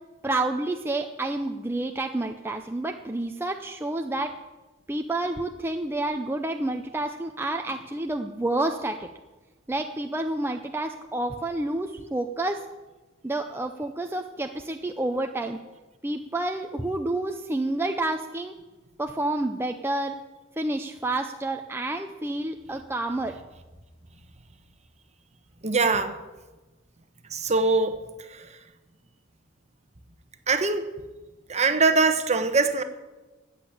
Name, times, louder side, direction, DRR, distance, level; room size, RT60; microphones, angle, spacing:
voice 1, 0.2-4.3 4.9-9.1 9.7-12.6 13.2-15.6 16.0-18.5 19.0-20.2 20.6-23.4, right 2 dB, 10° right, 4 dB, 0.6 m, -29 dB
voice 2, 25.6-26.2 27.3-28.0 28.3-28.5 30.5-30.9 31.5-32.8, right 3 dB, 35° right, 9 dB, 1.1 m, -22 dB
14.0 x 8.4 x 8.8 m, 1.2 s
head